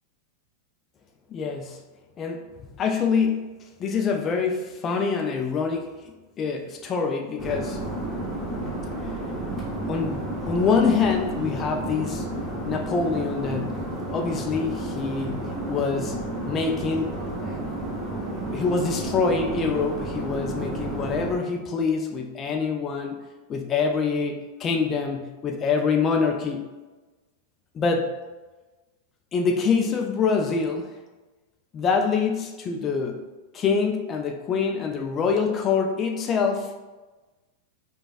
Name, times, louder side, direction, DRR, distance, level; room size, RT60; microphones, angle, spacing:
voice 1, 1.3-1.8 2.2-2.4 2.8-3.5 3.8-7.8 9.0-9.1 9.9-12.3 12.7-13.8 14.1-16.2 16.5-17.2 18.4-26.7 27.7-28.1 29.3-30.9 31.7-33.2 33.5-36.8, left 5 dB, 25° left, 4 dB, 0.3 m, -25 dB
sound 1, 7.4-21.4, right 1 dB, 10° right, 0.9 m, -31 dB
4.9 x 2.2 x 2.5 m, 1.2 s
figure-of-eight pair, 90°, 0 cm